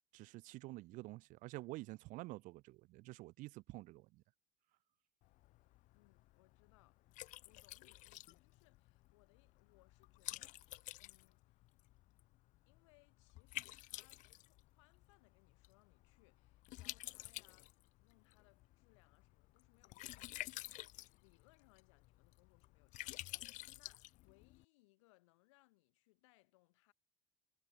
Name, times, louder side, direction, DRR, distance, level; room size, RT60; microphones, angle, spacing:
voice 1, 0.1-4.2, right 20 dB, 55° right, 0.6 m, -49 dB
Liquid, 5.2-24.6, left 18 dB, 55° left, 0.7 m, -52 dB
voice 2, 5.9-11.6 12.7-26.9, left 22 dB, 75° left, 4.3 m, -72 dB
hypercardioid pair, 85°, 16 cm